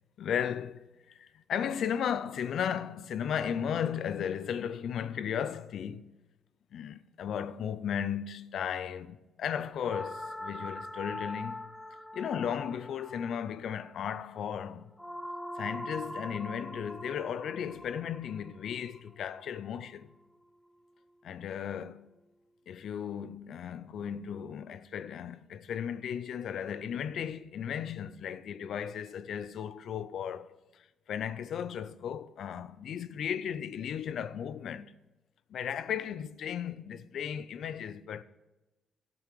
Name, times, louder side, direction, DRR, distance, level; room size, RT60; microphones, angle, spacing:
voice 1, 0.2-6.1 6.7-11.7 12.1-14.9 15.6-20.1 21.2-22.1 22.7-34.9 35.5-38.2, left 8 dB, 65° left, 0.5 m, -35 dB
sound 1, 9.8-20.0, left 1 dB, ahead, 0.5 m, -43 dB
13.0 x 7.8 x 4.8 m
cardioid pair, 90°, 0 cm